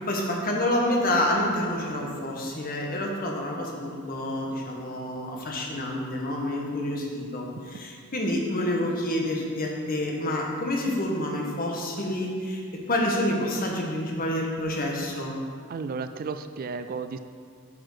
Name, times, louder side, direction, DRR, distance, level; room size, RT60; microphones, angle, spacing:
voice 1, 0.1-12.6 12.9-15.3, left 1 dB, 40° left, -1 dB, 1.4 m, -28 dB
voice 2, 15.7-17.2, right 4 dB, 40° right, 10 dB, 0.3 m, -33 dB
8.6 x 6.0 x 4.9 m, 2.1 s
head